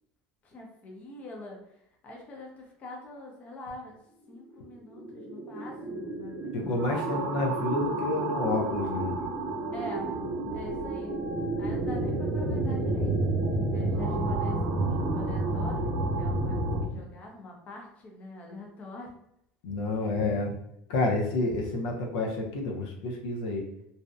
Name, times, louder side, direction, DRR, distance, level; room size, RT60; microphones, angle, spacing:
voice 1, 0.4-4.0 4.3-6.8 9.7-10.1 10.5-11.1 11.6-13.1 13.7-16.6 16.8-19.1, left 1 dB, 30° left, 0 dB, 0.6 m, -45 dB
sound 1, 4.6-16.8, right 2 dB, 65° right, 0.6 m, -30 dB
voice 2, 6.5-9.2 16.9-17.0 19.6-20.5 20.9-23.7, left 2 dB, 85° left, 1 dB, 0.5 m, -29 dB
2.7 x 2.0 x 2.3 m, 0.77 s
cardioid pair, 150°, 5 cm